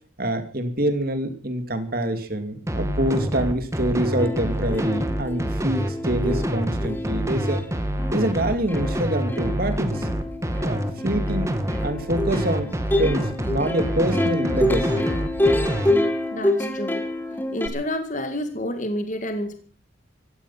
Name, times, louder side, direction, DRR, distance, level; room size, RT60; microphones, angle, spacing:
voice 1, 0.2-7.6 8.1-10.1 10.6-11.5 11.8-12.7 13.0-15.0, right 1 dB, 45° right, 8 dB, 2.7 m, -26 dB
sound 1, 2.7-15.9, equal, 15° right, 2.0 m, -26 dB
Plucked string instrument, 3.8-3.9 4.2-17.7, left 1 dB, 10° left, 1.9 m, -27 dB
voice 2, 16.3-17.1 17.5-19.6, left 1 dB, 40° left, 7 dB, 1.9 m, -29 dB
17.0 x 14.5 x 5.9 m, 0.42 s
head